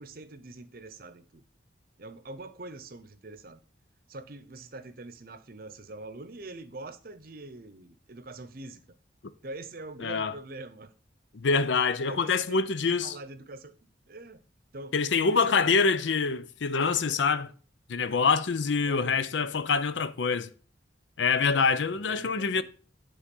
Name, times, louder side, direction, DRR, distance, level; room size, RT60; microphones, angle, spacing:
voice 1, 0.0-1.4 2.0-3.6 4.1-8.8 9.4-10.9 12.1-12.6 13.0-13.7 14.1-14.4 14.7-14.9 15.3-15.7 18.8-19.3 21.7-22.6, right 2 dB, 50° right, 0.7 m, -43 dB
voice 2, 10.0-10.3 11.3-13.1 14.9-17.5 17.9-20.5 21.2-22.6, left 5 dB, 75° left, 0.6 m, -25 dB
9.9 x 3.7 x 5.3 m
head